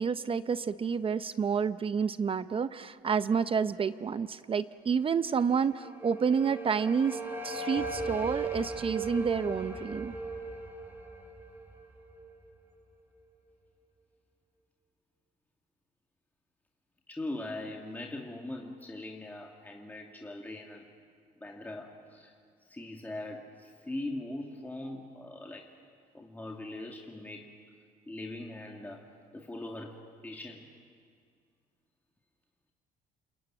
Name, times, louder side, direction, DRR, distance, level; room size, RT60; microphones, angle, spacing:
voice 1, 0.0-10.2, right 6 dB, 35° right, 13 dB, 0.6 m, -29 dB
sound 1, 5.5-12.5, right 3 dB, 10° right, 5.2 m, -38 dB
voice 2, 17.1-20.9 21.4-22.3 22.7-25.7 26.1-27.6 28.1-30.7, left 2 dB, 10° left, 0 dB, 2.3 m, -41 dB
29.0 x 21.5 x 9.1 m, 2.1 s
cardioid pair, 110°, 17 cm